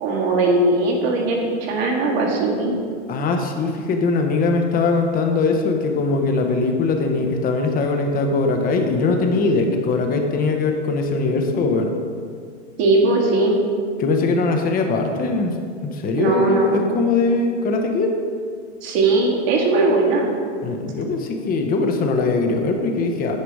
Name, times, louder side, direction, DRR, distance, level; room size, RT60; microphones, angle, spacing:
voice 1, 0.0-2.8 12.8-13.6 16.2-16.8 18.8-20.3, right 2 dB, 60° right, -2 dB, 2.0 m, -19 dB
voice 2, 3.1-11.9 14.0-15.5 15.8-18.2 20.6-23.4, left 3 dB, 25° left, 4 dB, 0.9 m, -21 dB
9.5 x 5.0 x 4.8 m, 2.2 s
hypercardioid pair, 130°, 35 cm